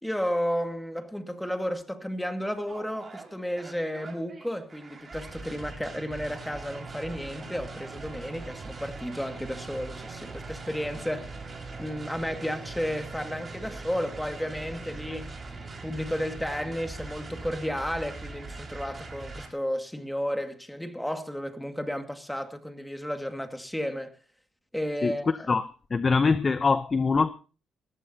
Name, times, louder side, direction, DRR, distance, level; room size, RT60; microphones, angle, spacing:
voice 1, 0.0-11.3 11.8-15.3 15.8-24.1 24.7-25.5, equal, 5° left, 2.1 m, -33 dB
sound 1, 2.7-19.5, right 3 dB, 30° right, 4.9 m, -41 dB
voice 2, 25.5-27.3, left 4 dB, 35° left, 0.7 m, -23 dB
20.0 x 15.0 x 2.8 m
cardioid pair, 90°, 0 cm